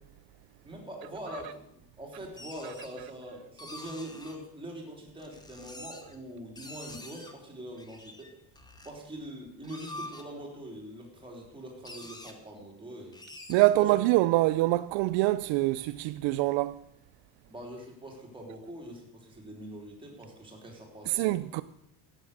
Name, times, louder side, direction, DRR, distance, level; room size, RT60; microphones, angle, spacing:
voice 1, 0.6-8.3 8.8-13.2 13.7-14.0 17.5-21.5, right 1 dB, 10° right, 3.3 m, -43 dB
sound 1, 1.2-1.5 2.2-2.9 3.6-4.4 5.1-6.2 6.5-7.3 7.8-8.9 9.5-10.2 11.2-11.3 11.5-11.6 11.8-12.3 13.1-13.6, left 2 dB, 10° left, 1.0 m, -46 dB
voice 2, 13.5-16.8 21.1-21.6, right 18 dB, 70° right, 0.6 m, -25 dB
14.0 x 8.8 x 6.5 m
cardioid pair, 160°, 47 cm